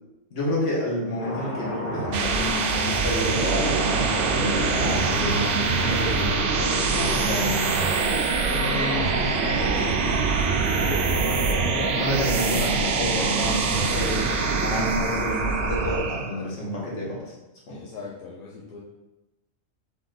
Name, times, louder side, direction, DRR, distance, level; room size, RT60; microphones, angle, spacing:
voice 1, 0.3-7.8 11.2-11.3 11.9-14.2 14.6-17.3 17.7-17.8, left 1 dB, 70° left, -5 dB, 1.6 m, -29 dB
sound 1, 1.2-16.0, equal, 45° left, 1.3 m, -32 dB
sound 2, 1.8-16.4, right 5 dB, 70° right, 0.8 m, -25 dB
Wind instrument woodwind instrument, 5.6-10.2, equal, 90° right, 1.1 m, -39 dB
voice 2, 8.5-10.3 10.8-12.1 12.6-12.8 14.0-14.3 17.7-18.8, left 6 dB, 85° left, -4 dB, 1.1 m, -36 dB
3.6 x 3.6 x 3.8 m, 1.0 s
omnidirectional pair, 1.4 m